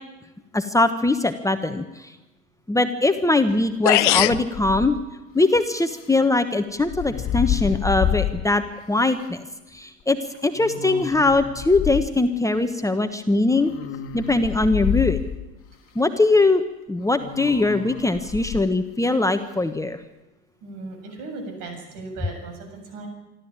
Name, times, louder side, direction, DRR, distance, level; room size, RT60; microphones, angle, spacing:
voice 1, 0.5-2.1 2.7-5.0 5.3-8.6 8.9-9.5 9.7-10.2 10.4-13.7 14.1-15.2 15.9-16.6 16.9-20.0, left 2 dB, 10° left, 7 dB, 1.3 m, -21 dB
sound 1, 3.5-3.6 3.8-4.4, left 17 dB, 75° left, 0.7 m, -18 dB
sound 2, 4.5-5.0 6.8-8.5 9.1-9.2 10.6-12.1 13.5-15.4 17.2-18.7, left 11 dB, 40° left, 1.9 m, -28 dB
voice 2, 20.6-23.1, right 3 dB, 60° right, 4 dB, 7.5 m, -37 dB
26.0 x 13.0 x 9.0 m, 1.0 s
hypercardioid pair, 80°, 36 cm